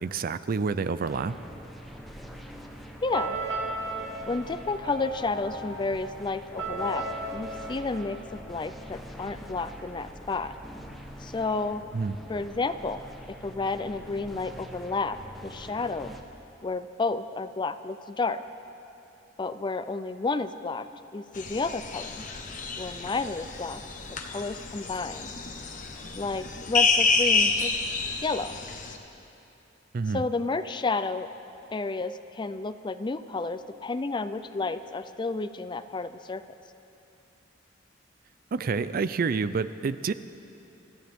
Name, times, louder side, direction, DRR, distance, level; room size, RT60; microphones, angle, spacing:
voice 1, 0.0-1.4 11.9-12.2 29.9-30.2 38.5-40.1, right 4 dB, 45° right, 14 dB, 0.4 m, -28 dB
sound 1, 1.0-16.2, equal, ahead, 1.0 m, -45 dB
voice 2, 3.0-3.4 4.2-7.0 7.3-10.5 11.2-11.8 12.3-13.0 13.3-16.1 16.6-18.4 19.4-20.9 21.1-22.3 22.8-23.8 24.3-25.3 26.2-27.7 28.2-28.6 30.1-31.3 31.7-36.4, left 3 dB, 25° left, 12 dB, 0.4 m, -31 dB
sound 2, 3.1-8.9, right 2 dB, 75° right, 1.7 m, -36 dB
sound 3, 21.3-29.0, left 4 dB, 40° left, 1.1 m, -29 dB
25.0 x 14.0 x 3.6 m, 2.8 s
head